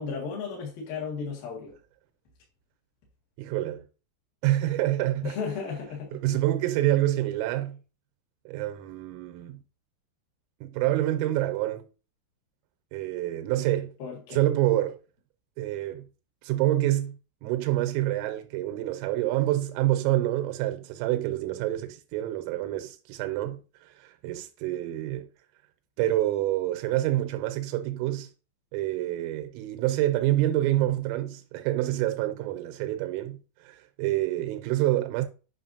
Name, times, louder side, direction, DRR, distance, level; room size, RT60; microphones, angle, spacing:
voice 1, 0.0-1.7 5.2-6.4 14.0-14.4, left 5 dB, 60° left, 2.9 m, -34 dB
voice 2, 3.4-3.8 4.4-5.4 6.1-7.8 8.5-9.6 10.6-11.8 12.9-13.9 14.3-15.0 15.6-16.0 16.4-17.2 17.4-25.3 26.0-28.3 28.7-35.3, right 14 dB, 85° right, 3.3 m, -27 dB
8.9 x 5.6 x 2.7 m
omnidirectional pair, 5.9 m